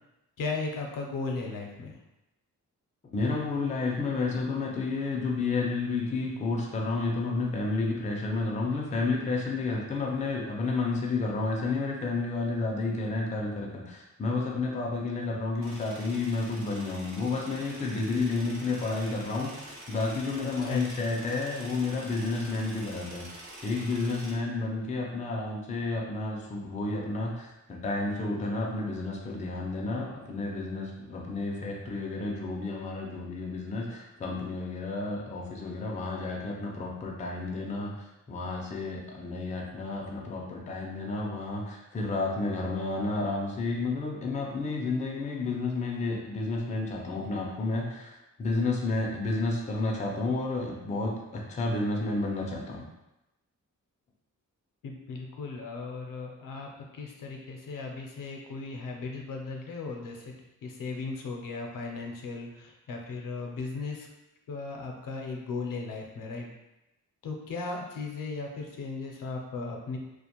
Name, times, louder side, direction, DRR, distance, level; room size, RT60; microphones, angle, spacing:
voice 1, 0.4-2.0 20.4-21.1 54.8-60.4 60.6-64.1 64.5-66.5 67.2-70.0, left 3 dB, 80° left, 1 dB, 0.5 m, -36 dB
voice 2, 3.1-52.9, left 3 dB, 25° left, -1 dB, 0.4 m, -31 dB
sound 1, 15.6-24.3, right 1 dB, 55° right, 0.6 m, -46 dB
2.4 x 2.1 x 2.8 m, 0.94 s
wide cardioid pair, 145°, 33 cm